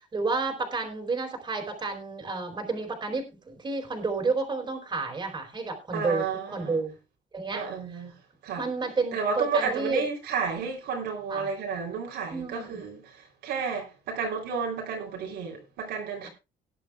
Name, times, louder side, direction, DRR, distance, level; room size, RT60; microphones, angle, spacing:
voice 1, 0.1-6.2 6.5-7.0 7.3-7.6 8.6-10.0 11.3-11.5 12.3-12.8, right 3 dB, 25° right, 4.2 m, -30 dB
voice 2, 5.9-6.8 7.5-8.2 8.4-8.7 9.1-16.3, right 5 dB, 75° right, 3.6 m, -31 dB
18.0 x 10.5 x 2.4 m
cardioid pair, 110°, 17 cm